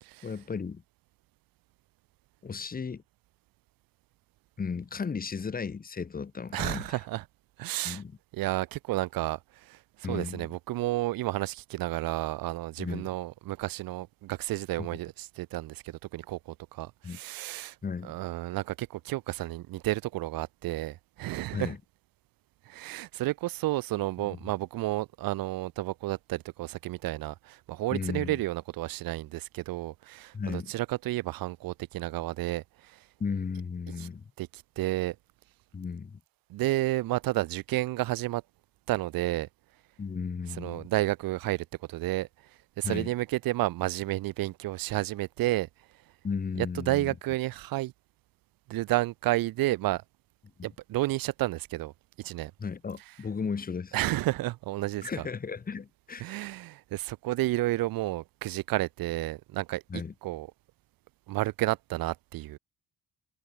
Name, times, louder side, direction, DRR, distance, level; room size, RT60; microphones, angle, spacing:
voice 1, 0.2-0.8 2.4-3.0 4.6-7.0 7.8-8.2 10.0-10.5 12.8-13.1 14.8-14.9 17.0-17.2 17.8-18.1 21.5-21.8 27.9-28.4 30.3-30.7 33.2-34.2 35.7-36.2 40.0-40.9 42.8-43.1 46.2-47.1 50.6-50.7 52.6-54.0 55.0-56.2 59.9-60.1, left 5 dB, 25° left, 6.0 m, -35 dB
voice 2, 6.5-7.2 7.6-8.0 8.3-9.8 10.1-16.4 16.7-17.7 18.0-21.7 22.7-32.9 34.0-34.1 34.4-35.1 36.5-38.4 38.9-39.5 40.6-42.3 42.8-45.7 46.6-47.9 48.7-50.0 50.6-51.9 52.2-52.5 53.9-55.1 56.2-59.8 60.2-60.5 61.3-62.6, right 17 dB, 70° right, 1.3 m, -31 dB
cardioid pair, 165°, 36 cm